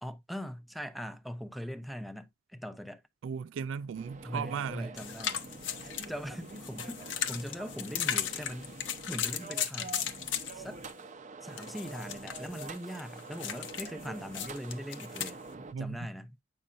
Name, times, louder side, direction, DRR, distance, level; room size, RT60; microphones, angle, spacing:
voice 1, 0.0-3.0 4.2-5.4 5.8-8.7 9.1-10.2 10.5-10.8 11.4-15.4 15.8-16.4, equal, ahead, 0.6 m, -41 dB
voice 2, 3.2-4.9 15.7-16.1, right 6 dB, 75° right, 0.3 m, -36 dB
sound 1, 3.9-15.7, right 3 dB, 40° right, 0.7 m, -46 dB
sound 2, 5.0-10.9 11.6-15.3, left 9 dB, 70° left, 0.9 m, -36 dB
8.6 x 5.4 x 2.5 m
head